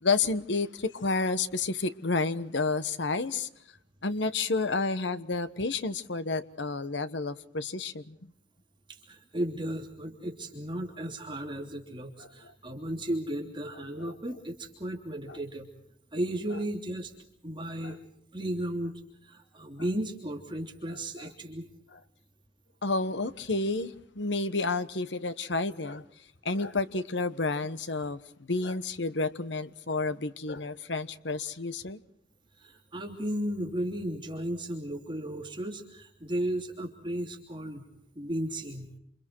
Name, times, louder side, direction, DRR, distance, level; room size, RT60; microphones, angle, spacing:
voice 1, 0.0-3.5 4.0-8.2 14.0-14.1 15.3-15.4 17.8-17.9 21.2-21.3 21.9-22.0 22.8-26.0 26.4-28.2 28.5-32.0, left 3 dB, 80° left, 1.2 m, -30 dB
voice 2, 8.9-15.7 16.1-17.1 17.4-18.0 18.3-18.9 19.2-21.7 32.6-37.8 38.1-38.9, right 1 dB, 25° right, 3.1 m, -34 dB
28.0 x 28.0 x 4.6 m
head